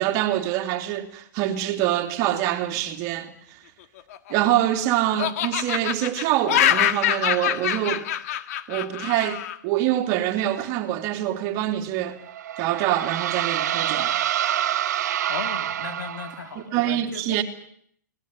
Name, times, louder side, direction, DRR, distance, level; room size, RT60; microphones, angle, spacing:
voice 1, 0.0-3.6 4.3-8.1 8.7-12.2 12.6-14.5 16.7-17.4, right 13 dB, 35° right, 3.0 m, -25 dB
Laughter, 4.0-4.8 5.2-9.6, left 11 dB, 50° left, 1.9 m, -24 dB
sound 1, 12.2-16.6, right 11 dB, 60° right, 1.2 m, -27 dB
voice 2, 15.3-17.4, left 6 dB, 80° left, 3.4 m, -36 dB
24.0 x 18.5 x 9.8 m
hypercardioid pair, 140°, 10 cm